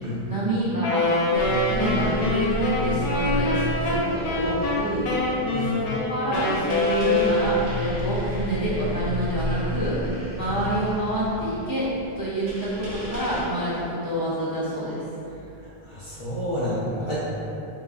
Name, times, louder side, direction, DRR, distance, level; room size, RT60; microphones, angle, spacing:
voice 1, 0.2-5.1 5.6-11.9 12.2-15.0, equal, 30° right, -10 dB, 0.5 m, -27 dB
Wind instrument woodwind instrument, 0.8-7.8, left 2 dB, 70° left, 0.7 m, -25 dB
sound 1, 1.3-13.4, right 1 dB, 60° right, 0.8 m, -32 dB
voice 2, 5.5-5.8 10.4-10.6 15.8-17.2, equal, 40° left, -9 dB, 0.4 m, -30 dB
3.5 x 2.5 x 2.4 m, 2.7 s
omnidirectional pair, 1.1 m